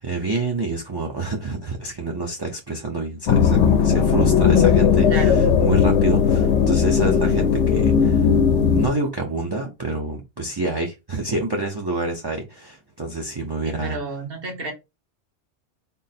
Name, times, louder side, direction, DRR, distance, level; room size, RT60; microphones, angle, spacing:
voice 1, 0.0-8.3 8.7-14.0, right 3 dB, 30° right, 0.5 m, -27 dB
sound 1, 3.3-8.9, left 7 dB, 90° left, 0.9 m, -17 dB
voice 2, 5.1-5.4 13.6-14.7, right 3 dB, 60° right, 1.2 m, -31 dB
3.8 x 2.0 x 4.1 m
omnidirectional pair, 1.2 m